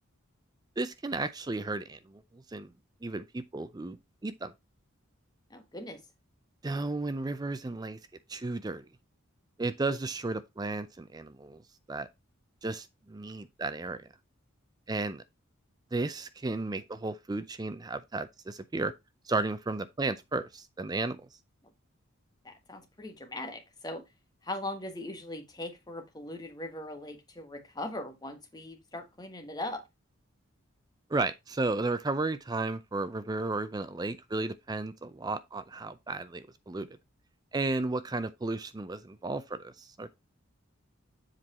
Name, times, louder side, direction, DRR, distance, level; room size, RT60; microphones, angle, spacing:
voice 1, 0.8-2.2 2.5-2.7 3.0-4.5 6.6-8.0 8.3-8.8 9.6-11.6 11.9-12.1 12.6-14.1 14.9-15.2 15.9-18.9 19.3-21.2 31.1-36.9 37.5-40.1, right 3 dB, 20° right, 0.4 m, -33 dB
voice 2, 5.5-6.0 22.4-24.1 24.4-29.8, left 1 dB, 20° left, 1.3 m, -40 dB
7.6 x 4.6 x 4.1 m
head